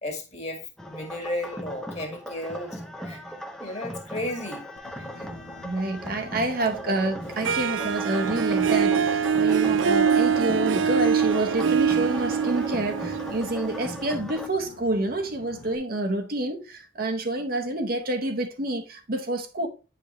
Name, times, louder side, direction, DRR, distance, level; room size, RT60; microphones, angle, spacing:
voice 1, 0.0-3.2 3.6-4.6 5.0-5.1, left 1 dB, 35° left, 1.7 m, -34 dB
sound 1, 0.8-14.5, equal, 5° left, 0.7 m, -38 dB
Boat Water vehicle, 4.8-15.8, left 2 dB, 85° left, 1.1 m, -47 dB
voice 2, 5.6-19.7, right 2 dB, 50° right, 0.9 m, -28 dB
Harp, 7.4-14.3, right 7 dB, 75° right, 0.4 m, -24 dB
8.6 x 5.1 x 3.1 m
head